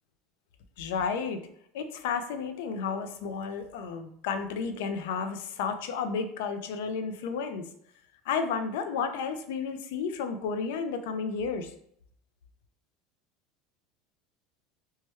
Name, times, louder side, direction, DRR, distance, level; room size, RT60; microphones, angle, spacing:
voice 1, 0.8-1.4 1.7-7.7 8.3-11.7, left 5 dB, 80° left, 8 dB, 0.3 m, -32 dB
3.0 x 2.2 x 3.0 m, 0.67 s
supercardioid pair, 110°, 0 cm